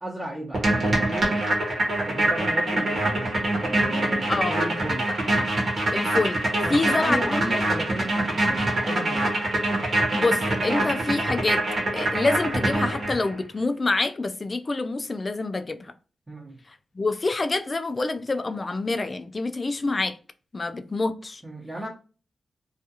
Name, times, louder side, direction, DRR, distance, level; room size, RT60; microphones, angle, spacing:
voice 1, 0.0-1.4 2.0-5.1 6.6-9.4 16.3-16.6 21.4-21.9, right 1 dB, 20° right, 0.8 m, -34 dB
sound 1, 0.5-13.3, right 1 dB, 45° right, 1.0 m, -24 dB
voice 2, 5.9-6.4 6.7-7.6 10.1-11.6 11.9-15.9 17.0-20.2 20.5-21.4, left 3 dB, 30° left, 0.3 m, -26 dB
2.4 x 2.4 x 2.7 m
wide cardioid pair, 100°, 0 cm